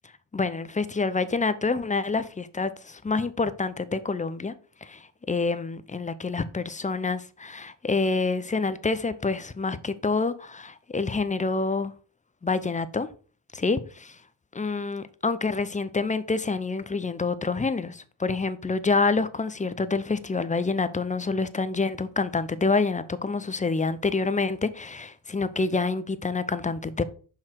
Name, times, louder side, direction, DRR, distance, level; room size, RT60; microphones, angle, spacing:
voice 1, 0.3-4.5 4.8-11.9 12.4-13.1 13.5-14.2 14.5-27.0, left 4 dB, 15° left, 0.6 m, -27 dB
5.7 x 4.6 x 4.4 m
hypercardioid pair, 55°, 50 cm